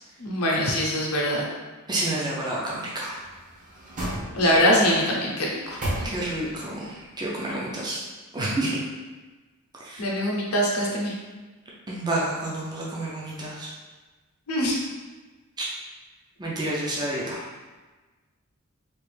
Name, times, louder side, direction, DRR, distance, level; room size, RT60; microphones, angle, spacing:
voice 1, 0.2-1.5 4.3-5.8 10.0-11.1 14.5-14.8, equal, 70° left, -2 dB, 0.8 m, -23 dB
voice 2, 1.9-3.1 6.0-6.8 7.2-8.0 8.3-8.7 9.9-10.0 11.9-13.7 16.4-17.4, right 1 dB, 20° right, -5 dB, 0.5 m, -29 dB
sound 1, 3.1-4.8 5.3-6.6 7.0-7.1, right 1 dB, 35° right, 0.9 m, -34 dB
3.3 x 2.5 x 3.2 m, 1.3 s
head